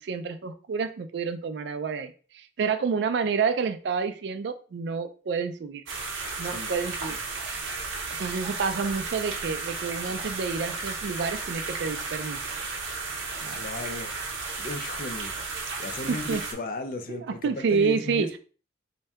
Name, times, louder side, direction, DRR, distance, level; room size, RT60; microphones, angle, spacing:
voice 1, 0.0-5.8 6.4-7.6 8.2-12.4 13.4-13.6 16.1-16.4 17.1-18.3, right 5 dB, 60° right, 9 dB, 0.3 m, -29 dB
sound 1, 5.9-16.5, right 4 dB, 85° right, 0.7 m, -34 dB
voice 2, 13.5-14.1 14.6-15.4 15.8-18.4, left 2 dB, 45° left, 7 dB, 0.4 m, -35 dB
2.7 x 2.2 x 3.3 m, 0.38 s
head